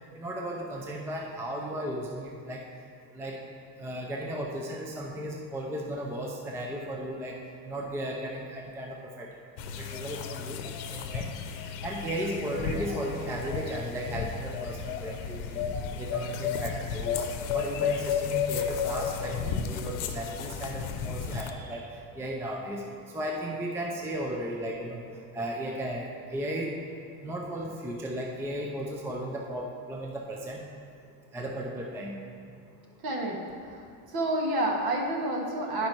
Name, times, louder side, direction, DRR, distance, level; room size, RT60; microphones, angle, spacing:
voice 1, 0.2-2.6 3.1-3.5 3.8-7.4 7.6-9.3 9.8-11.3 11.8-15.6 16.0-17.1 17.5-21.8 22.1-22.8 23.1-25.0 25.3-26.7 27.2-30.6 31.3-32.2, right 1 dB, 5° right, -1 dB, 0.4 m, -35 dB
sound 1, 9.6-21.5, left 7 dB, 75° left, 0.8 m, -33 dB
voice 2, 33.0-33.4 33.6-35.9, right 1 dB, 50° right, 1 dB, 1.5 m, -29 dB
10.5 x 5.3 x 4.4 m, 2.3 s
cardioid pair, 145°, 48 cm